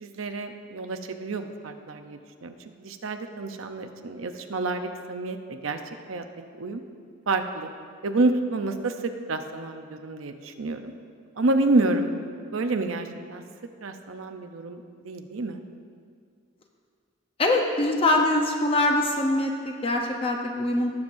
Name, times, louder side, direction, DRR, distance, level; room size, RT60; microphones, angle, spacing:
voice 1, 0.0-5.8 6.1-6.2 6.6-6.8 7.3-7.7 8.0-10.9 11.4-12.1 12.5-13.4 13.8-15.6, right 2 dB, 85° right, 6 dB, 0.7 m, -28 dB
voice 2, 17.4-20.9, left 2 dB, 30° left, 2 dB, 0.7 m, -23 dB
18.0 x 7.2 x 2.6 m, 2.1 s
head